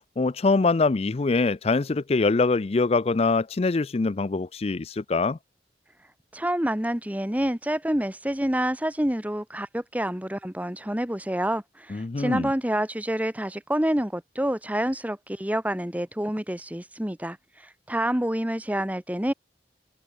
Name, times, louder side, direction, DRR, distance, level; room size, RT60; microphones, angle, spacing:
voice 1, 0.2-5.4 11.9-12.5, left 3 dB, 35° left, 0.4 m, -23 dB
voice 2, 6.3-17.4 17.9-19.3, right 1 dB, 10° right, 1.5 m, -27 dB
head